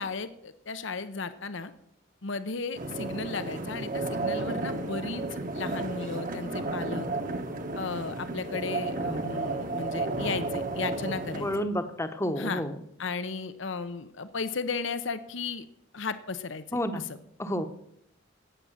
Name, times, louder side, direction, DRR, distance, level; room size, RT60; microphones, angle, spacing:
voice 1, 0.0-1.7 2.2-5.2 5.5-7.1 7.8-11.5 12.4-12.6 13.0-15.7 15.9-17.1, left 4 dB, 65° left, 11 dB, 0.8 m, -35 dB
sound 1, 2.7-11.6, right 2 dB, 40° right, 1.3 m, -33 dB
voice 2, 11.3-12.7 16.7-17.0 17.4-17.7, equal, 15° left, 9 dB, 1.0 m, -30 dB
17.5 x 7.5 x 7.3 m, 0.72 s
head